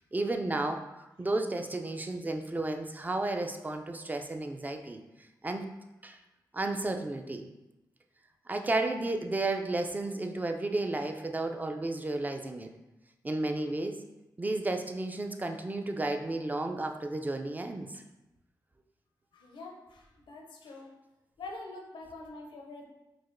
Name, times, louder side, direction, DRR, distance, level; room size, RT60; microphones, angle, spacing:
voice 1, 0.1-5.0 5.4-5.7 6.0-6.2 6.5-7.5 8.5-12.7 13.2-14.0 14.4-18.0, right 2 dB, 20° right, 5 dB, 0.3 m, -32 dB
voice 2, 19.3-20.9 21.4-22.8, left 2 dB, 90° left, 1 dB, 0.6 m, -45 dB
4.7 x 2.1 x 2.5 m, 0.97 s
cardioid pair, 60°, 8 cm